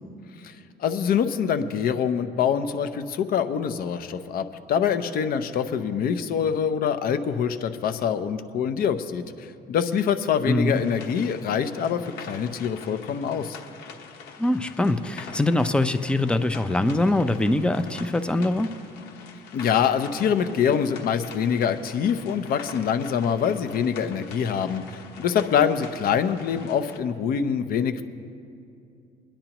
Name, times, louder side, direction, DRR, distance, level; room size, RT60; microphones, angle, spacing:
voice 1, 0.8-13.6 19.5-28.0, left 7 dB, 60° left, 10 dB, 0.7 m, -25 dB
voice 2, 10.5-10.8 14.4-18.7, left 2 dB, 5° left, 10 dB, 0.5 m, -23 dB
sound 1, 10.7-27.0, left 6 dB, 90° left, 1.1 m, -44 dB
22.0 x 10.0 x 3.0 m, 2.5 s
cardioid pair, 110°, 17 cm